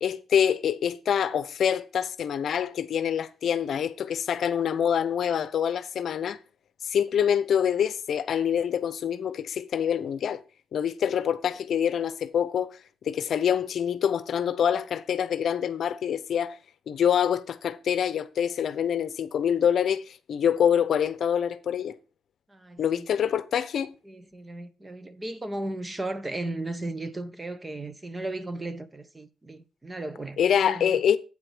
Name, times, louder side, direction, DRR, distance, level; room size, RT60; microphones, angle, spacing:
voice 1, 0.0-6.4 6.8-10.4 10.7-12.8 13.0-16.6 16.9-22.0 22.8-23.9 30.4-31.2, left 8 dB, 60° left, 0.7 m, -25 dB
voice 2, 22.5-23.1 24.1-31.0, right 2 dB, 20° right, 0.9 m, -36 dB
8.6 x 4.8 x 6.1 m
cardioid pair, 90°, 0 cm